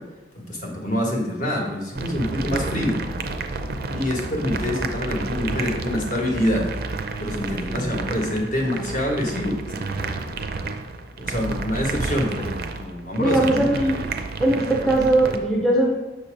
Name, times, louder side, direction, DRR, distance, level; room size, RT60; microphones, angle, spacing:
voice 1, 0.3-3.0 3.9-6.6 7.2-10.1 11.2-14.1, left 1 dB, 45° left, -1 dB, 1.2 m, -26 dB
sound 1, 2.0-15.4, right 3 dB, 55° right, 0.4 m, -30 dB
voice 2, 7.4-8.1 13.2-14.0 14.4-15.9, right 1 dB, ahead, -3 dB, 0.5 m, -21 dB
6.6 x 2.8 x 5.1 m, 1.1 s
head